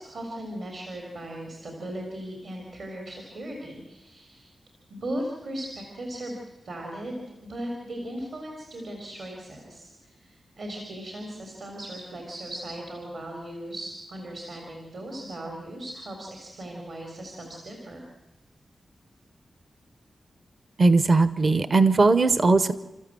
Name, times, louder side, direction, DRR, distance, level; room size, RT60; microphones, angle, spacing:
voice 1, 0.0-4.5 4.9-6.4 6.6-18.0, right 1 dB, 60° right, 1 dB, 3.8 m, -37 dB
voice 2, 20.8-22.7, right 3 dB, 40° right, 14 dB, 0.9 m, -19 dB
29.5 x 13.5 x 7.6 m, 1.1 s
wide cardioid pair, 155°, 0 cm